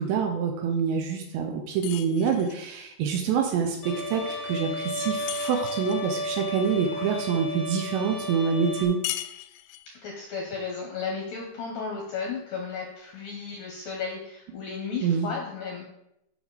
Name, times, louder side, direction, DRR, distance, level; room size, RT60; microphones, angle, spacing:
voice 1, 0.0-3.8 4.1-9.0 15.0-15.3, right 6 dB, 75° right, 4 dB, 2.8 m, -26 dB
sound 1, 1.8-2.7 5.3-6.1 9.0-10.0, left 15 dB, 90° left, 3.2 m, -37 dB
Bowed string instrument, 3.8-8.8, left 1 dB, 25° left, 1.3 m, -33 dB
voice 2, 10.0-15.9, left 5 dB, 70° left, -1 dB, 2.1 m, -34 dB
9.4 x 6.8 x 4.1 m, 0.82 s
omnidirectional pair, 5.7 m